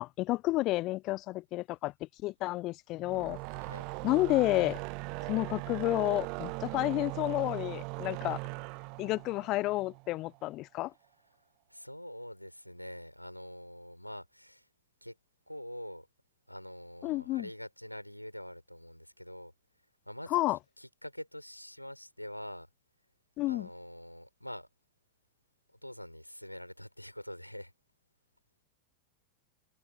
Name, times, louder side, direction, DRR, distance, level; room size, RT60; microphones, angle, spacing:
voice 1, 0.0-1.9 2.2-3.4 4.0-4.8 5.2-8.4 9.0-10.9 17.0-17.5 20.3-20.6 23.4-23.7, left 18 dB, 40° left, 0.6 m, -30 dB
sound 1, 3.0-10.4, right 32 dB, 45° right, 1.1 m, -40 dB
voice 2, 3.5-3.9 11.7-14.7 15.0-15.1 15.5-16.1 16.5-19.5 20.1-20.4 20.8-22.7 23.5-24.7 25.8-27.7, equal, 90° left, 4.8 m, -45 dB
figure-of-eight pair, 90°, 0 cm